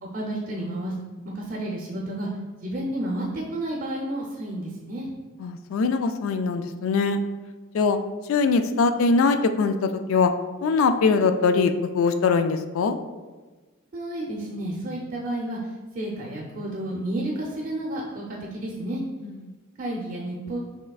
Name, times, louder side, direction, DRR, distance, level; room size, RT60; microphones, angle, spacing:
voice 1, 0.1-0.9 1.3-2.3 2.6-5.1 13.9-15.6 15.9-19.0 19.8-20.6, right 1 dB, 45° right, -2 dB, 0.6 m, -31 dB
voice 2, 5.4-7.2 7.7-8.0 8.3-10.3 10.6-13.0 19.2-19.4, left 4 dB, 70° left, 8 dB, 0.3 m, -22 dB
5.7 x 3.3 x 2.3 m, 1.3 s
head